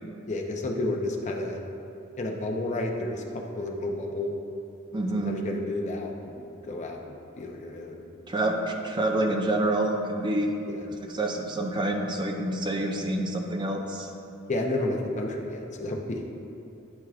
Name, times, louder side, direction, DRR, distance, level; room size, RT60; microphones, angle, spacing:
voice 1, 0.3-1.6 2.2-4.3 5.2-8.0 9.2-9.3 10.7-10.8 14.5-16.2, left 2 dB, 35° left, 1 dB, 0.6 m, -31 dB
voice 2, 4.9-5.4 8.3-10.5 11.1-14.1, right 1 dB, 25° right, 2 dB, 0.5 m, -27 dB
9.5 x 4.5 x 2.4 m, 2.7 s
head